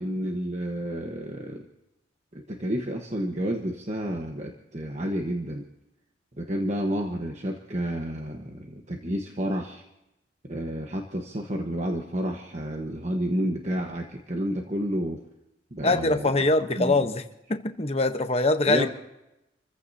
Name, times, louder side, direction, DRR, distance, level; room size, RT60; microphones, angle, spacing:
voice 1, 0.0-1.7 2.3-5.7 6.4-9.8 10.5-15.2 15.7-16.3 16.8-16.9 18.7-18.9, equal, 35° right, 2 dB, 1.3 m, -30 dB
voice 2, 15.8-17.2 17.5-18.9, left 2 dB, 30° left, 8 dB, 1.0 m, -23 dB
28.5 x 15.0 x 2.8 m, 0.90 s
head